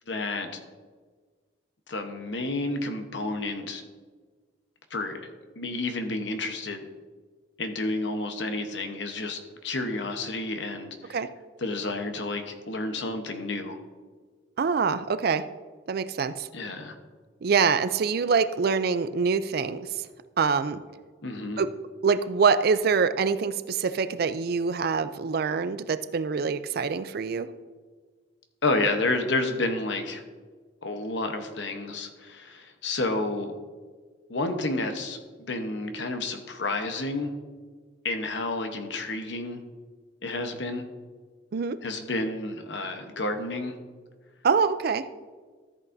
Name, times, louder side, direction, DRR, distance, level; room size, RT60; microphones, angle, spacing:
voice 1, 0.1-0.6 1.9-3.8 4.9-5.3 5.6-6.8 7.6-11.2 11.6-13.8 16.5-17.0 21.2-21.6 28.6-30.2 30.8-33.5 34.3-37.3 38.0-39.6 40.2-40.9 41.8-43.8, left 2 dB, 70° left, 6 dB, 1.0 m, -30 dB
voice 2, 14.6-15.4 15.9-16.5 17.4-19.9 20.4-20.8 21.6-21.7 22.0-27.5 41.5-41.8 44.4-45.0, right 5 dB, 55° right, 13 dB, 0.4 m, -25 dB
13.5 x 8.3 x 2.6 m, 1.5 s
head